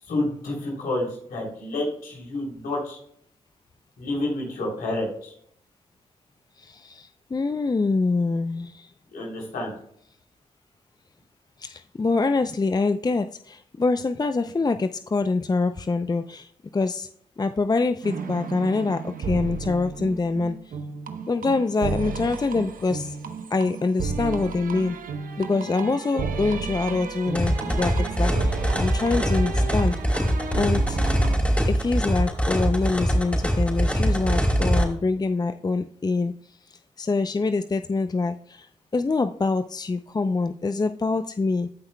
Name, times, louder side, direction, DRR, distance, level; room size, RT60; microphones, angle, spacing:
voice 1, 0.0-3.0 4.0-5.3 9.1-9.7, left 2 dB, 80° left, -2 dB, 3.3 m, -29 dB
voice 2, 6.6-8.9 11.6-17.1 17.4-20.6 21.3-23.2 23.5-25.0 25.4-29.9 30.6-31.0 31.7-38.7 38.9-41.7, left 3 dB, 30° left, 10 dB, 0.5 m, -25 dB
sound 1, 18.0-31.4, right 5 dB, 70° right, 0.8 m, -33 dB
sound 2, 27.3-34.8, equal, 10° left, 3.8 m, -23 dB
15.5 x 5.6 x 2.2 m, 0.65 s
supercardioid pair, 40°, 15 cm